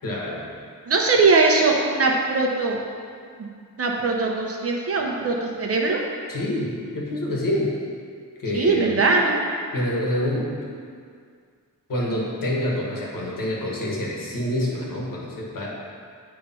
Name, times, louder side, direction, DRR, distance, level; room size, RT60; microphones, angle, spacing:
voice 1, 0.0-0.4 6.3-7.8 8.4-9.0 9.7-10.7 11.9-15.8, left 1 dB, 85° left, -3 dB, 1.5 m, -27 dB
voice 2, 0.9-2.8 3.4-3.5 3.8-6.0 8.5-9.4, right 3 dB, 45° right, 0 dB, 0.8 m, -20 dB
8.8 x 3.3 x 5.6 m, 2.1 s
wide cardioid pair, 170°, 32 cm